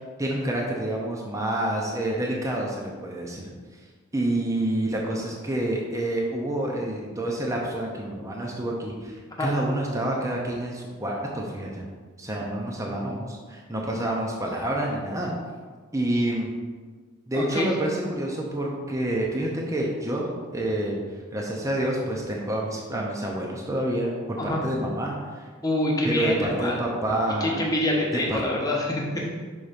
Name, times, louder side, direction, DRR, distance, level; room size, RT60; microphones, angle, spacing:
voice 1, 0.0-3.5 4.1-11.9 12.2-15.3 15.9-16.5 17.3-21.0 21.3-25.4 26.0-27.6 28.1-28.4, right 1 dB, 15° right, -2 dB, 0.6 m, -28 dB
voice 2, 17.3-17.7 24.4-24.6 25.6-26.8 27.4-29.4, left 1 dB, 20° left, -2 dB, 1.0 m, -26 dB
5.5 x 3.6 x 5.1 m, 1.5 s
head